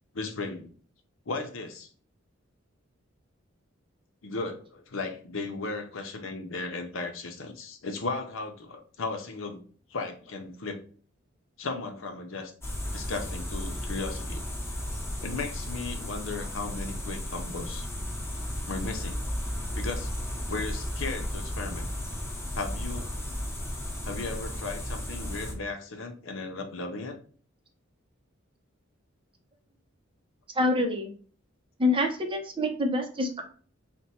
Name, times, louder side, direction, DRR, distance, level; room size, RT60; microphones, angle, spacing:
voice 1, 0.1-0.7 1.3-1.9 4.2-9.6 9.9-10.8 11.6-12.5 12.9-14.4 15.2-17.9 18.7-19.2 19.7-21.9 22.5-23.1 24.0-27.2, left 3 dB, 75° left, 6 dB, 0.7 m, -36 dB
sound 1, 12.6-25.5, left 1 dB, 15° left, 1.1 m, -34 dB
voice 2, 30.5-31.1 31.8-33.4, left 1 dB, 25° right, 4 dB, 0.7 m, -26 dB
4.3 x 2.2 x 4.2 m, 0.43 s
head